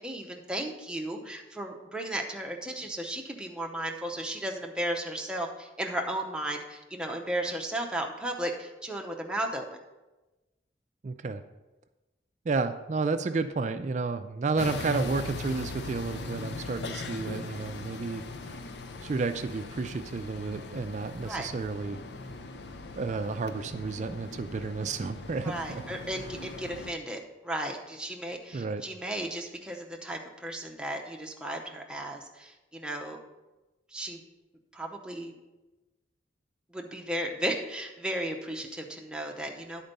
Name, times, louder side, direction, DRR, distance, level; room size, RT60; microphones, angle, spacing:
voice 1, 0.0-9.6 21.3-21.5 25.4-33.2 33.9-34.2 34.7-35.3 36.7-39.8, right 1 dB, 5° right, 1 dB, 0.7 m, -35 dB
voice 2, 11.0-11.4 12.5-18.6 19.0-22.0 23.0-25.8 28.5-28.8, right 4 dB, 40° right, 10 dB, 0.3 m, -31 dB
sound 1, 14.6-26.9, left 3 dB, 70° left, 0.5 m, -40 dB
10.5 x 4.4 x 5.3 m, 1.1 s
head